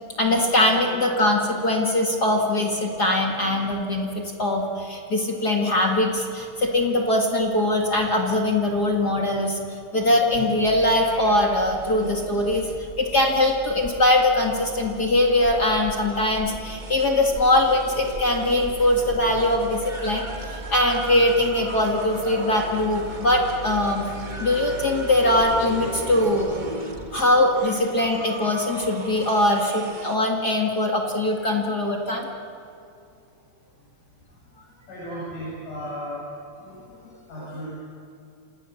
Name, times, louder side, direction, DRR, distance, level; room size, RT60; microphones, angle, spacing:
voice 1, 0.2-9.6 9.9-12.7 13.0-24.1 24.4-26.6 27.1-32.3, left 1 dB, 35° left, 1 dB, 2.2 m, -22 dB
sound 1, 10.7-30.2, right 1 dB, 35° right, 0.7 m, -37 dB
voice 2, 34.9-36.3 37.3-37.7, equal, 70° left, -7 dB, 9.2 m, -34 dB
29.5 x 26.5 x 7.2 m, 2.7 s
omnidirectional pair, 3.9 m